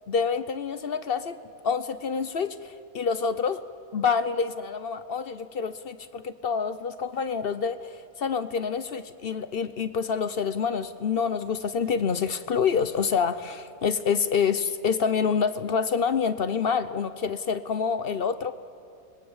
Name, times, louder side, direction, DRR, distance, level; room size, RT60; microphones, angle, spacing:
voice 1, 0.1-1.4 1.6-3.6 3.9-18.5, left 6 dB, 50° left, 13 dB, 0.8 m, -27 dB
26.5 x 20.5 x 7.3 m, 2.7 s
omnidirectional pair, 1.5 m